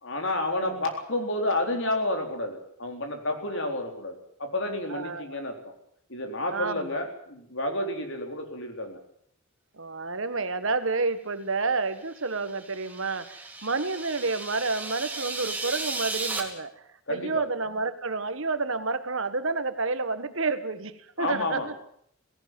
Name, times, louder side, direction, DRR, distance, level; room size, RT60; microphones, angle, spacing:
voice 1, 0.0-5.6 6.1-9.0 17.1-17.4 21.2-21.7, left 1 dB, 60° left, 4 dB, 3.9 m, -30 dB
voice 2, 0.6-0.9 4.9-5.4 6.5-7.0 9.8-16.7 17.1-21.7, right 3 dB, 60° right, 11 dB, 1.5 m, -30 dB
sound 1, 12.2-16.4, right 3 dB, 10° right, 2.6 m, -35 dB
17.5 x 17.0 x 9.3 m, 0.68 s
head